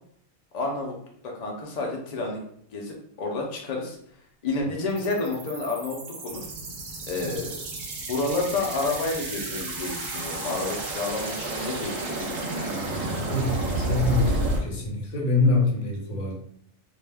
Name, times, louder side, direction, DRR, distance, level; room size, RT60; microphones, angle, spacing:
voice 1, 0.5-1.0 1.2-2.4 2.7-4.0 4.4-6.5 7.1-7.6 8.1-12.5, left 3 dB, 80° left, -1 dB, 0.3 m, -30 dB
sound 1, 4.9-14.6, right 2 dB, 80° right, 1.0 m, -31 dB
sound 2, 6.3-13.8, right 1 dB, 5° left, 1.0 m, -45 dB
voice 2, 13.0-16.3, left 3 dB, 50° left, -1 dB, 0.7 m, -25 dB
2.6 x 2.1 x 3.3 m, 0.68 s
omnidirectional pair, 1.4 m